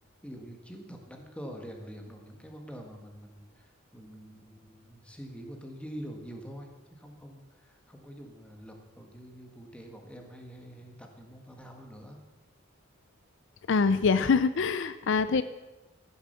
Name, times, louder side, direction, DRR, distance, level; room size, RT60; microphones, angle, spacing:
voice 1, 0.2-12.2, equal, 5° left, 3 dB, 1.6 m, -45 dB
voice 2, 13.7-15.4, left 5 dB, 60° left, 13 dB, 0.5 m, -24 dB
14.5 x 7.2 x 6.7 m, 1.1 s
head